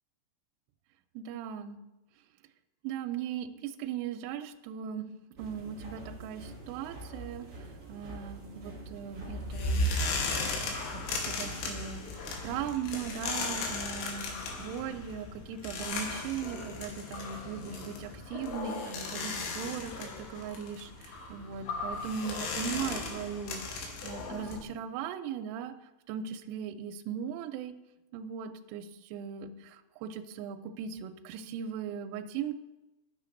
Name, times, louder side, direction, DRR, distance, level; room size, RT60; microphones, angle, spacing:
voice 1, 1.2-1.8 2.8-5.1 5.4-10.0 10.9-14.3 14.6-25.7 26.1-27.7 28.1-32.5, right 8 dB, 85° right, 7 dB, 3.0 m, -38 dB
sound 1, 5.3-12.7, right 2 dB, 35° right, 2.6 m, -46 dB
sound 2, 9.1-24.6, left 3 dB, 80° left, 3.5 m, -36 dB
13.0 x 6.4 x 2.6 m, 1.0 s
omnidirectional pair, 5.7 m